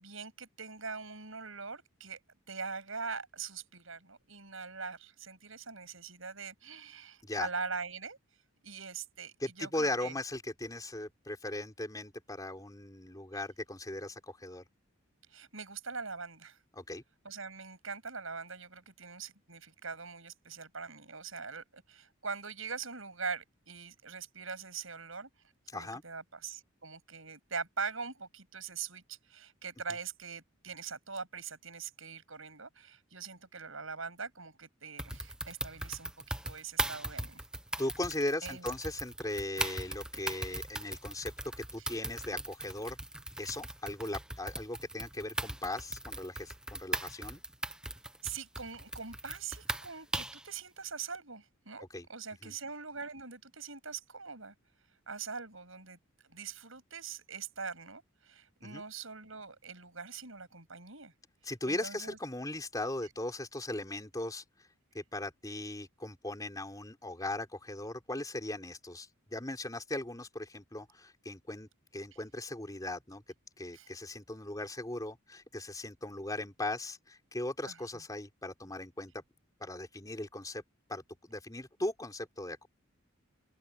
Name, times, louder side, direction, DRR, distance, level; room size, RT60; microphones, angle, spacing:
voice 1, 0.0-2.2 2.5-8.2 8.6-10.1 15.3-16.6 17.2-25.3 25.7-37.4 38.4-38.6 41.8-41.9 48.2-54.5 55.1-56.0 56.2-61.1 61.7-62.2 73.7-73.9 77.7-77.8, right 5 dB, 70° right, 7.6 m, -42 dB
voice 2, 9.4-14.6 16.7-17.0 25.7-26.0 37.8-43.0 43.4-47.4 51.9-52.1 52.4-52.5 58.6-58.8 61.4-64.7 64.9-73.2 73.6-79.2 79.6-80.6 80.9-82.7, left 1 dB, 15° left, 4.1 m, -38 dB
sound 1, 35.0-50.5, right 1 dB, 5° right, 1.0 m, -39 dB
open air
head